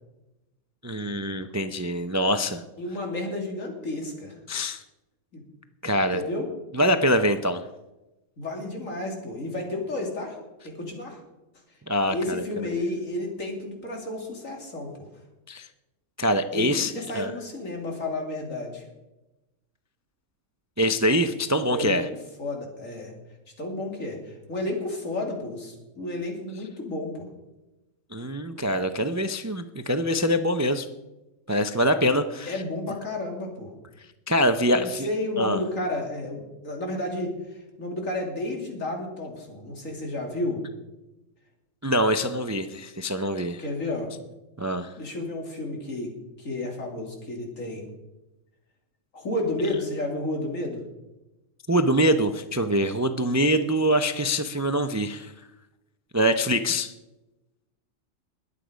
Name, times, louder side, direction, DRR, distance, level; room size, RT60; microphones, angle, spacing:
voice 1, 0.8-2.6 4.5-4.8 5.8-6.2 6.7-7.6 11.9-12.4 12.7-12.8 15.5-15.7 16.2-17.3 20.8-22.1 28.1-30.9 31.5-32.6 34.3-35.1 35.4-35.6 41.8-43.6 44.6-44.9 51.7-55.3 56.1-56.9, equal, 25° right, 9 dB, 0.3 m, -24 dB
voice 2, 2.8-4.3 5.3-5.4 6.1-6.5 8.4-10.4 10.6-11.2 12.1-14.9 16.5-18.8 21.7-22.0 22.4-23.1 23.6-27.3 32.5-33.7 34.7-37.3 37.8-40.6 43.6-44.1 45.0-46.1 46.4-47.9 49.1-50.8, left 2 dB, 80° left, 1 dB, 3.1 m, -31 dB
21.0 x 8.5 x 5.1 m, 1.0 s
omnidirectional pair, 1.4 m